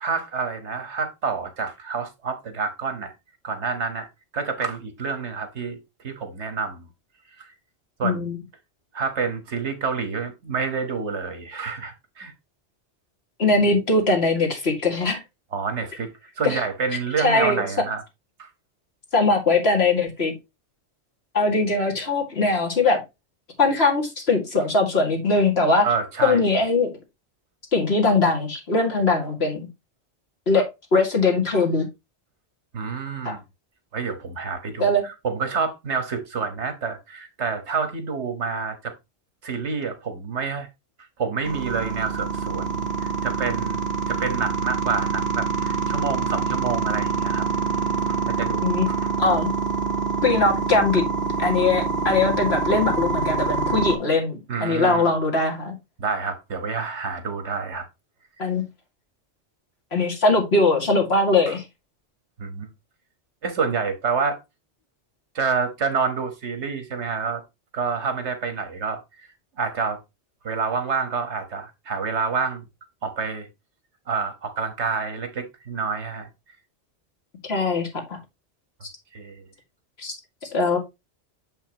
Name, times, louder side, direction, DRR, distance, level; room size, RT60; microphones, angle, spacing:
voice 1, 0.0-3.1 3.4-4.1 4.3-5.8 6.0-6.9 7.4-7.5 8.0-8.2 8.9-12.3 15.5-18.0 18.4-18.5 25.8-26.4 32.7-33.4 33.9-38.9 39.4-40.7 41.2-47.5 48.1-49.1 54.5-55.1 56.0-57.9 61.5-61.6 62.4-62.7 63.4-64.4 65.3-67.4 67.7-69.0 69.6-70.0 70.4-72.6 73.0-73.5 74.1-76.3 79.1-79.4, right 5 dB, 75° right, 1.6 m, -28 dB
voice 2, 8.0-8.4 13.4-15.2 16.4-16.6 17.2-17.7 19.1-20.3 21.3-23.0 23.6-25.9 26.2-26.9 27.7-29.7 30.5-30.7 30.9-31.8 33.2-33.4 34.8-35.0 48.6-48.9 49.2-49.5 50.2-51.0 51.4-55.7 58.4-58.6 59.9-61.6 77.4-78.2 80.0-80.2 80.5-80.8, left 3 dB, 65° left, 2.3 m, -21 dB
sound 1, 41.4-54.0, right 4 dB, 60° right, 1.4 m, -26 dB
7.1 x 5.7 x 2.9 m
omnidirectional pair, 1.2 m